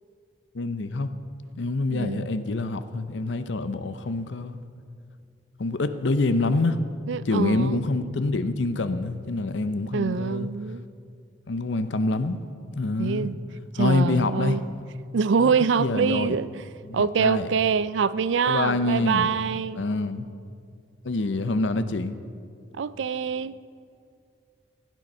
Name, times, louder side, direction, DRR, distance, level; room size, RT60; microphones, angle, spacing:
voice 1, 0.5-1.1 1.6-4.6 5.6-6.8 7.2-10.5 11.5-12.4 12.8-13.3 13.8-14.6 15.4-15.5 15.8-16.4 16.8-17.5 18.5-19.3 19.8-20.3 21.0-22.2, left 2 dB, 70° left, 0.6 m, -26 dB
voice 2, 1.9-2.3 7.1-7.8 9.9-10.8 13.0-13.4 13.7-14.6 15.1-16.6 16.9-19.8 22.8-23.6, right 6 dB, 70° right, 0.4 m, -25 dB
15.5 x 9.3 x 5.5 m
head